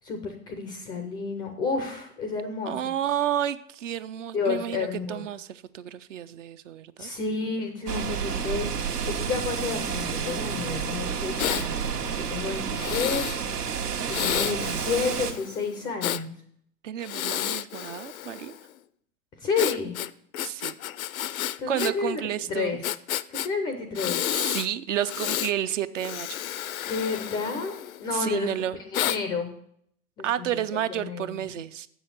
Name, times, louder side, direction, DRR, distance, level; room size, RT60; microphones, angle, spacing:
voice 1, 0.0-2.9 4.3-5.2 7.0-8.7 9.0-13.3 14.1-16.3 19.4-20.0 21.6-22.8 23.3-24.2 26.8-28.5 28.9-29.5 30.2-30.5 30.7-31.4, left 4 dB, 10° left, 6 dB, 0.4 m, -30 dB
voice 2, 2.6-7.1 16.8-18.5 20.4-20.7 21.7-22.8 24.3-26.3 28.1-28.8 30.2-31.9, right 11 dB, 50° right, 13 dB, 0.6 m, -31 dB
sound 1, 7.9-15.3, right 6 dB, 70° right, 1.3 m, -30 dB
Breathing, 11.4-11.7 12.7-13.4 14.1-16.2 17.0-18.6 19.6-21.9 22.2-22.3 22.8-23.5 23.9-24.7 25.0-25.5 26.0-28.1 28.9-29.2, left 12 dB, 60° left, 0.6 m, -31 dB
7.6 x 6.4 x 7.8 m, 0.68 s
figure-of-eight pair, 105°, 47 cm